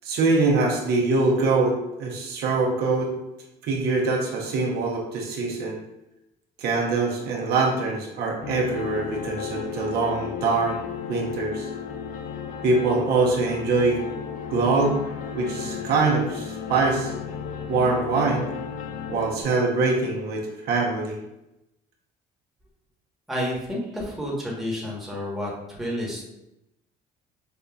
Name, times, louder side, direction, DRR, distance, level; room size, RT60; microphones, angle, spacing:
voice 1, 0.0-3.1 3.6-5.8 6.6-10.8 11.1-11.7 12.6-14.0 14.5-15.0 15.3-17.1 17.7-18.5 19.1-21.2, right 3 dB, 70° right, -1 dB, 0.8 m, -23 dB
sound 1, 8.4-19.4, left 7 dB, 55° left, 0.5 m, -34 dB
voice 2, 23.3-26.2, equal, ahead, -5 dB, 1.2 m, -30 dB
5.3 x 2.6 x 2.3 m, 0.90 s
cardioid pair, 110°, 17 cm